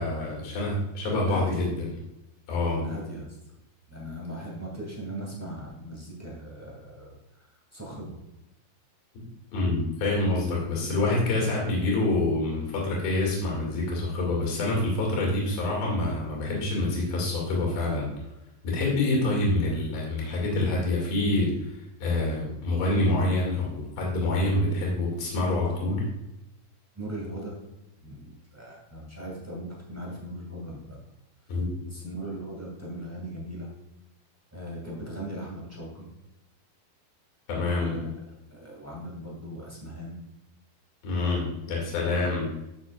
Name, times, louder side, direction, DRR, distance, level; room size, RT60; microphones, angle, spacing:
voice 1, 0.0-1.9 2.5-2.8 9.5-18.1 18.6-21.7 22.0-26.1 31.5-31.8 37.5-38.0 41.0-42.5, left 2 dB, 70° left, -3 dB, 4.1 m, -26 dB
voice 2, 1.1-1.6 2.7-3.3 3.9-8.2 11.3-11.5 13.6-13.8 26.9-27.6 28.0-31.0 31.5-31.6 31.8-33.7 34.5-36.1 37.6-40.2 42.2-42.3, right 1 dB, 5° right, -4 dB, 1.2 m, -39 dB
13.0 x 6.3 x 2.4 m, 0.91 s
omnidirectional pair, 4.4 m